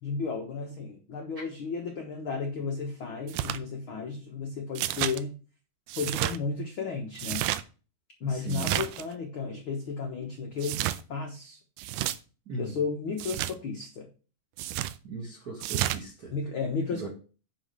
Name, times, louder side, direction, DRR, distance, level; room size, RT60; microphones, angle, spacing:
voice 1, 0.0-5.3 6.0-7.5 8.2-11.6 12.6-14.1 16.3-17.1, left 4 dB, 75° left, 1.2 m, -33 dB
sound 1, 3.3-3.6 4.8-5.2 5.9-6.4 7.2-7.6 8.5-9.1 10.6-11.0 11.8-12.2 13.2-13.5 14.6-15.0 15.6-16.0, right 14 dB, 85° right, 1.9 m, -30 dB
voice 2, 8.2-8.7 12.5-12.8 15.0-16.3 16.9-17.1, right 4 dB, 40° right, 1.3 m, -38 dB
9.9 x 4.2 x 6.8 m
omnidirectional pair, 4.2 m